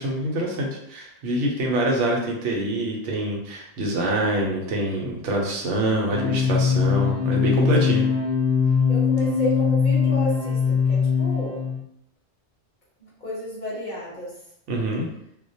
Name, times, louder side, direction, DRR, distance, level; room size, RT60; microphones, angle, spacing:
voice 1, 0.0-8.1 14.7-15.1, right 1 dB, 80° right, -1 dB, 0.9 m, -25 dB
sound 1, 6.1-11.8, left 6 dB, 70° left, 0.3 m, -21 dB
voice 2, 8.9-11.7 13.0-14.3, equal, 45° left, -7 dB, 0.8 m, -32 dB
2.3 x 2.1 x 2.6 m, 0.78 s
omnidirectional pair, 1.2 m